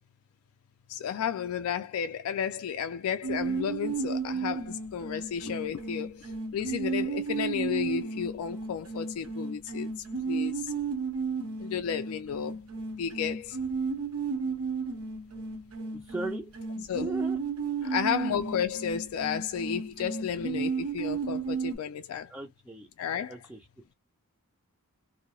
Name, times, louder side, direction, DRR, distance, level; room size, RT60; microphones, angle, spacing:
voice 1, 0.9-10.7 11.6-12.6 13.0-13.6 16.9-17.1 17.9-22.3 23.0-23.4, left 8 dB, 70° left, 0.3 m, -32 dB
sound 1, 3.2-21.8, right 5 dB, 85° right, 0.8 m, -33 dB
voice 2, 15.9-16.5 16.8-17.4 17.8-18.1 22.3-22.9 23.3-23.7, right 2 dB, 10° right, 0.4 m, -38 dB
2.3 x 2.0 x 2.9 m
head